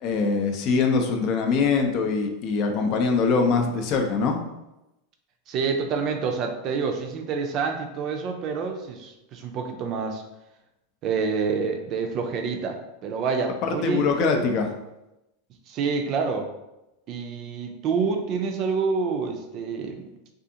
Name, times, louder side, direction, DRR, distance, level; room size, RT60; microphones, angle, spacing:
voice 1, 0.0-4.4 13.6-14.7, left 4 dB, 50° left, 4 dB, 0.4 m, -23 dB
voice 2, 5.5-10.2 11.0-14.5 15.7-16.5 17.1-20.1, right 5 dB, 45° right, 4 dB, 0.4 m, -27 dB
2.5 x 2.4 x 2.7 m, 0.93 s
hypercardioid pair, 105°, 0 cm